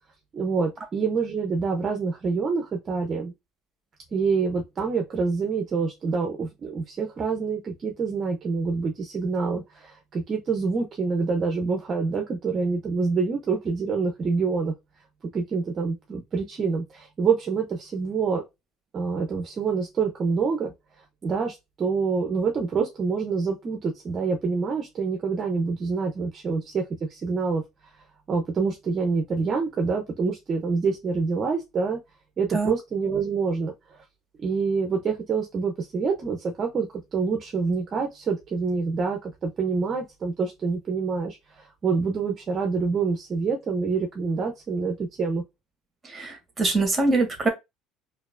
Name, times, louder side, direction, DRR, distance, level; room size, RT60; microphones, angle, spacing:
voice 1, 0.3-3.3 4.1-14.7 15.3-18.5 18.9-20.7 21.2-27.6 28.3-32.0 32.4-34.0 34.4-45.4, right 4 dB, 30° right, 0.7 m, -26 dB
voice 2, 46.0-47.5, right 3 dB, 15° right, 1.5 m, -24 dB
4.4 x 2.6 x 2.5 m
cardioid pair, 130°, 0 cm